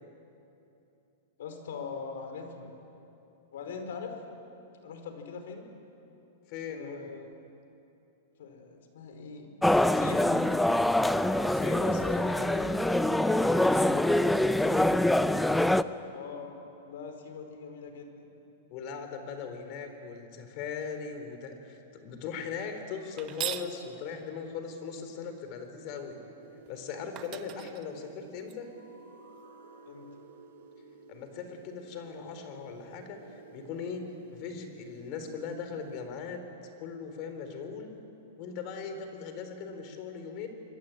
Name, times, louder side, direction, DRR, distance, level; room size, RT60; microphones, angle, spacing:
voice 1, 1.4-2.7 3.5-4.2 4.8-5.7 6.7-7.3 8.4-9.5 9.8-10.4 16.1-18.3 29.8-30.1, left 5 dB, 75° left, 6 dB, 4.9 m, -42 dB
voice 2, 6.5-7.1 11.5-14.9 18.7-26.2 26.7-28.7 31.1-36.4 36.8-37.9 38.4-40.5, left 6 dB, 40° left, 7 dB, 3.8 m, -39 dB
sound 1, 9.6-15.8, left 1 dB, 5° left, 0.5 m, -25 dB
sound 2, 23.2-23.7 26.7-26.8 27.2-28.5, right 13 dB, 30° right, 1.1 m, -38 dB
sound 3, 26.4-36.0, right 3 dB, 70° right, 4.0 m, -52 dB
27.5 x 22.0 x 9.2 m, 2.9 s
supercardioid pair, 155°, 0 cm